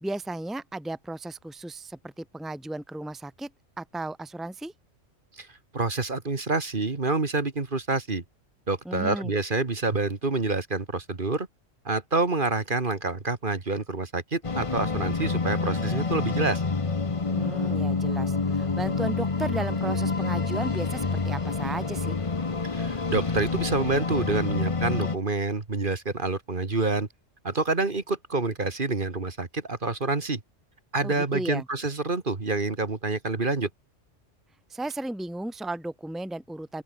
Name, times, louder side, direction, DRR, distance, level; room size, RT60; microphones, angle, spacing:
voice 1, 0.0-3.5 3.8-4.7 8.8-9.3 17.3-22.2 31.0-31.6 34.7-36.8, right 2 dB, ahead, 1.4 m, -34 dB
voice 2, 5.7-8.2 8.7-11.5 11.9-16.6 22.6-27.1 27.4-30.4 30.9-33.7, right 3 dB, 45° right, 2.0 m, -27 dB
sound 1, 14.4-25.2, left 4 dB, 30° left, 1.0 m, -28 dB
open air
omnidirectional pair, 1.3 m